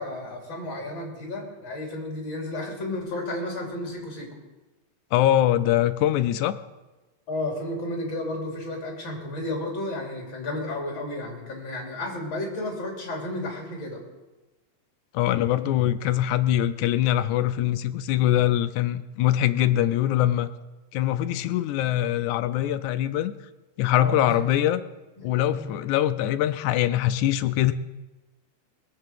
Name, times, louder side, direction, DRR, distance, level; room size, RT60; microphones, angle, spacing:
voice 1, 0.0-4.4 7.3-14.0 23.9-24.4 25.2-25.3 25.6-25.8, left 1 dB, 40° left, 0 dB, 3.6 m, -32 dB
voice 2, 5.1-6.6 15.1-20.5 20.9-23.3 23.8-24.8 25.2-27.7, left 12 dB, 80° left, 12 dB, 2.0 m, -23 dB
19.5 x 6.8 x 7.5 m, 1.1 s
omnidirectional pair, 3.6 m